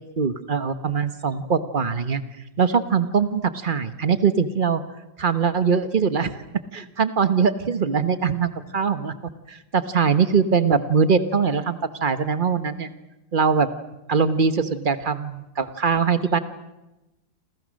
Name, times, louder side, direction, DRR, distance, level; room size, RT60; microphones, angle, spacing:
voice 1, 0.2-2.2 2.6-4.8 5.2-6.3 6.7-9.1 9.5-12.9 13.3-13.7 14.1-16.4, right 6 dB, 30° right, 11 dB, 1.0 m, -22 dB
28.0 x 28.0 x 6.4 m, 0.99 s
omnidirectional pair, 2.1 m